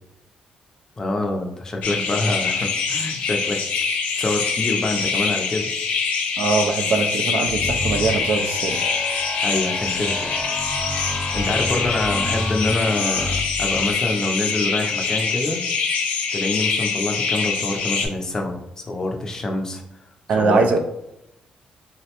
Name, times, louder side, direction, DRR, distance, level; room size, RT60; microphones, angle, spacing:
voice 1, 1.0-3.6 4.2-5.7 9.4-10.4 11.3-15.6 16.3-19.8 20.4-20.8, left 2 dB, 25° left, 2 dB, 0.4 m, -26 dB
sound 1, 1.8-18.1, left 5 dB, 90° left, 0.6 m, -24 dB
voice 2, 6.4-8.8 20.3-20.8, right 4 dB, 60° right, 5 dB, 0.4 m, -21 dB
sound 2, 7.4-13.9, left 1 dB, 5° right, 0.9 m, -30 dB
3.7 x 2.1 x 2.8 m, 0.86 s
cardioid pair, 160°, 3 cm